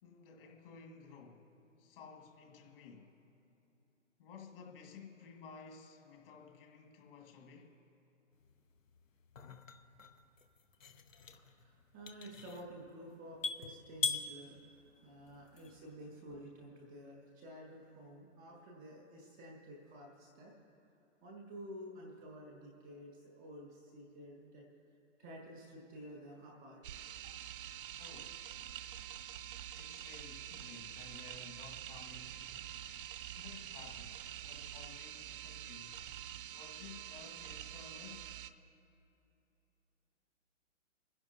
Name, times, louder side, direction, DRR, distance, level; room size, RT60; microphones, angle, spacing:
voice 1, 0.0-1.5 1.8-3.2 4.2-7.8 14.9-15.4 28.0-28.5 29.7-32.9 33.3-36.0 36.5-38.3, left 5 dB, 45° left, 2.0 m, -55 dB
sound 1, 8.4-15.9, left 5 dB, 85° left, 1.0 m, -43 dB
voice 2, 11.1-20.5 21.2-24.7 25.2-26.8, equal, 5° left, 0.3 m, -51 dB
sound 2, 26.8-38.5, right 10 dB, 45° right, 0.6 m, -47 dB
30.0 x 10.5 x 2.8 m
hypercardioid pair, 135°, 38 cm